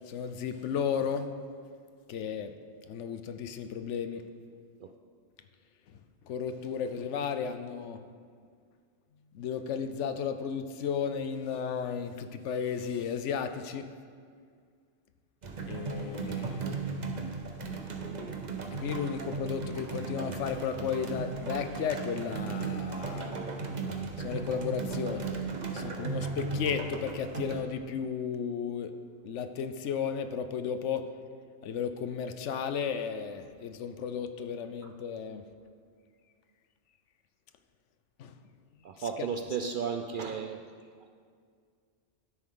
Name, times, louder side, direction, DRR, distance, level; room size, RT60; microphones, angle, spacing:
voice 1, 0.1-1.3 2.1-2.5 2.9-4.2 6.2-8.0 9.3-13.9 15.7-16.7 18.8-23.4 24.2-25.4 25.7-28.9 29.2-31.1 31.6-35.5 38.2-38.4 39.0-39.3, left 7 dB, 75° left, 9 dB, 1.0 m, -34 dB
sound 1, 15.4-27.6, right 4 dB, 40° right, 0.9 m, -36 dB
voice 2, 38.8-40.6, right 6 dB, 60° right, 6 dB, 0.5 m, -34 dB
12.5 x 9.6 x 3.8 m, 2.1 s
omnidirectional pair, 1.2 m